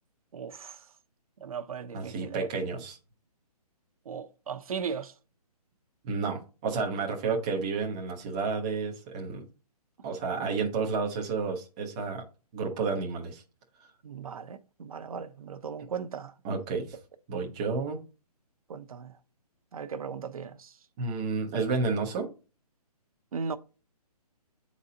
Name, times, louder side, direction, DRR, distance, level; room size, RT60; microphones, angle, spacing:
voice 1, 0.3-0.9 1.4-2.5 4.1-5.1 14.0-16.3 18.7-19.2 19.7-20.8 23.3-23.6, right 6 dB, 60° right, 0.7 m, -37 dB
voice 2, 1.9-3.0 6.0-9.5 10.0-12.2 12.5-13.4 16.4-17.0 17.3-18.0 21.0-22.3, right 4 dB, 10° right, 0.4 m, -31 dB
8.0 x 4.2 x 3.8 m
hypercardioid pair, 170°, 20 cm